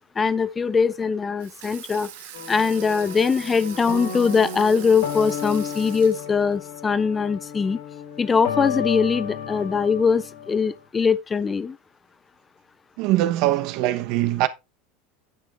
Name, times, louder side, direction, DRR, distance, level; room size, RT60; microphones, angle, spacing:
voice 1, 0.2-2.1 2.5-7.8 8.2-11.8, left 5 dB, 20° left, 0.6 m, -22 dB
Water tap faucet / Sink (filling or washing), 1.4-6.6, right 11 dB, 80° right, 1.4 m, -42 dB
sound 1, 2.3-10.7, left 7 dB, 85° left, 4.8 m, -33 dB
voice 2, 13.0-14.5, right 15 dB, 60° right, 1.0 m, -22 dB
9.9 x 6.2 x 3.3 m
supercardioid pair, 105°, 0 cm